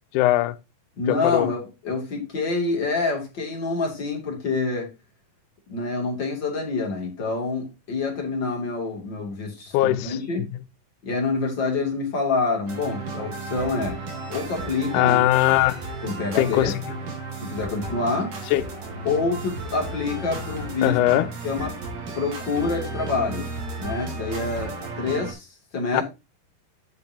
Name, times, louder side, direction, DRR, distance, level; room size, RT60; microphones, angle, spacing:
voice 1, 0.1-0.6 1.1-1.5 9.7-10.2 14.9-15.8 16.4-16.7 18.5-18.6 20.8-21.3 25.9-26.0, left 15 dB, 80° left, 1.8 m, -20 dB
voice 2, 1.0-4.9 5.7-10.5 11.0-14.0 14.3-15.2 16.0-16.8 17.4-18.3 19.0-21.0 21.4-21.8 22.1-23.5 23.8-25.5 25.7-26.0, left 3 dB, 35° left, 3.0 m, -27 dB
sound 1, 12.7-25.3, right 3 dB, 60° right, 4.3 m, -34 dB
10.0 x 8.6 x 2.8 m
omnidirectional pair, 4.2 m